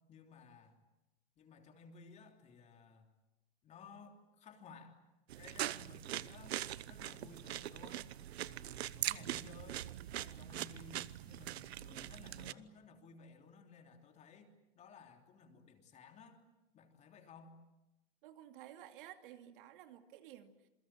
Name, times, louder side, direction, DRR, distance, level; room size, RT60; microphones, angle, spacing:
voice 1, 0.1-0.7 1.4-3.1 3.6-5.0 5.4-8.1 8.4-9.8 10.1-16.4 16.7-17.6, left 4 dB, 20° left, 5 dB, 3.3 m, -57 dB
Eating Peppers, 5.3-12.5, right 13 dB, 85° right, 1.1 m, -42 dB
voice 2, 18.2-20.6, right 11 dB, 55° right, 7 dB, 2.6 m, -54 dB
28.0 x 23.0 x 9.1 m, 0.94 s
supercardioid pair, 160°, 31 cm